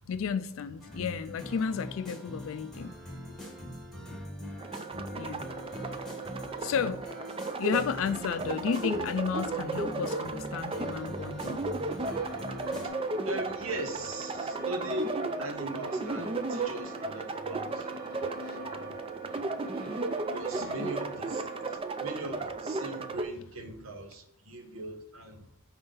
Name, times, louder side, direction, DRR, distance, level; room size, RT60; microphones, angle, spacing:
voice 1, 0.1-2.9 5.1-5.5 6.6-7.0 7.6-11.6 18.5-18.6 19.3-19.4 20.6-20.9, left 6 dB, 70° left, 0.3 m, -32 dB
sound 1, 0.8-12.9, left 1 dB, ahead, 2.0 m, -43 dB
voice 2, 3.9-4.2 12.8-17.9 18.6-19.5 20.3-21.4 21.7-25.5, right 2 dB, 75° right, 1.0 m, -40 dB
sound 2, 4.6-23.2, right 3 dB, 25° right, 0.4 m, -35 dB
sound 3, 12.0-21.8, left 1 dB, 45° right, 1.1 m, -45 dB
5.5 x 4.4 x 5.3 m
head